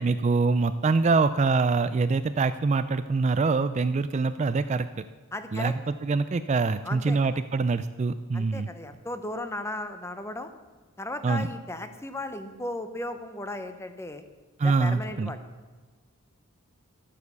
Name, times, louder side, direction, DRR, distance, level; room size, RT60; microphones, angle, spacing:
voice 1, 0.0-5.0 5.5-8.7 11.2-11.5 14.6-15.3, right 4 dB, 30° right, 12 dB, 0.3 m, -24 dB
voice 2, 5.3-5.7 6.8-7.4 8.3-10.5 11.0-14.2 14.6-15.4, left 1 dB, 10° left, 9 dB, 0.8 m, -36 dB
12.0 x 9.3 x 6.9 m, 1.3 s
head